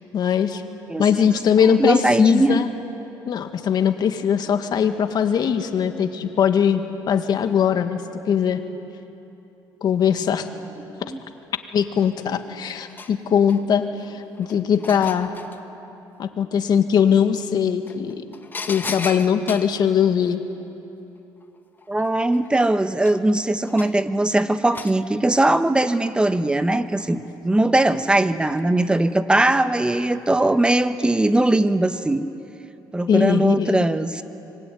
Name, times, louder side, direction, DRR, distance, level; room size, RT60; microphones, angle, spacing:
voice 1, 0.1-0.6 1.0-2.7 3.3-6.8 7.1-8.0 8.3-8.6 9.8-10.5 11.7-15.3 16.2-18.2 18.7-20.4 33.1-33.9, left 7 dB, 55° left, 7 dB, 1.9 m, -20 dB
voice 2, 1.8-2.6 11.0-11.2 21.9-32.3 32.9-34.2, right 2 dB, 10° right, 10 dB, 1.2 m, -20 dB
sound 1, 12.2-12.3 12.6-13.8 14.3-15.6 17.3-17.4 17.9-19.8 21.4-21.5 21.8-24.1 24.7-25.0 26.6-27.3 27.8-28.3 29.3-29.6 29.9-30.0, left 3 dB, 25° left, 1.4 m, -36 dB
25.5 x 22.5 x 9.5 m, 2.9 s
cardioid pair, 100°, 8 cm